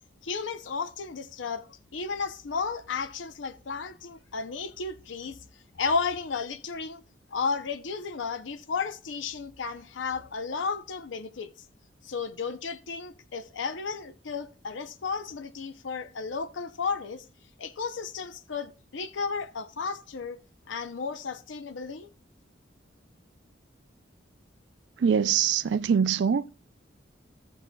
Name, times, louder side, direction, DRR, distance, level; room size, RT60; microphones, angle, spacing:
voice 1, 0.2-5.4 5.8-7.0 7.3-11.5 12.0-17.2 17.6-20.4 20.7-22.1, left 5 dB, 90° left, 0.6 m, -33 dB
voice 2, 25.0-26.5, right 7 dB, 70° right, 0.4 m, -23 dB
15.5 x 7.1 x 2.2 m
head